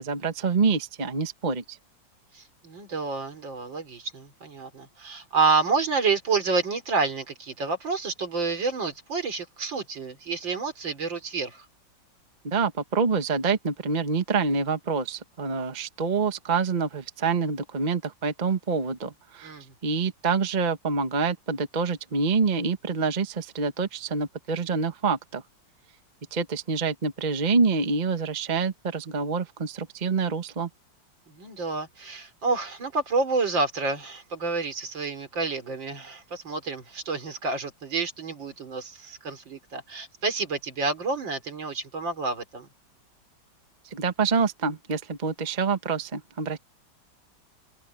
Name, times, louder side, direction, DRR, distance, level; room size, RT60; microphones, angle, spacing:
voice 1, 0.0-1.8 12.4-19.5 19.8-25.4 26.3-30.7 43.9-46.6, right 4 dB, 25° right, 1.1 m, -26 dB
voice 2, 2.3-11.6 19.4-19.7 31.3-42.7, right 4 dB, 75° right, 4.6 m, -29 dB
omnidirectional pair, 2.0 m